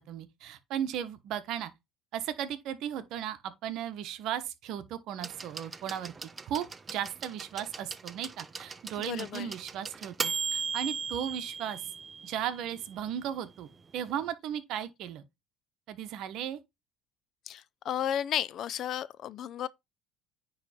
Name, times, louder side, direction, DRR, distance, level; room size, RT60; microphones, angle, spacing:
voice 1, 0.0-1.7 2.1-6.1 6.5-11.8 12.2-13.7 13.9-15.2 15.9-16.6, right 10 dB, 60° right, 1.1 m, -36 dB
sound 1, 5.2-13.0 14.1-14.2, right 5 dB, 20° right, 0.5 m, -38 dB
voice 2, 9.0-9.5 17.5-19.7, left 10 dB, 50° left, 0.5 m, -33 dB
9.6 x 3.2 x 4.3 m
cardioid pair, 130°, 0 cm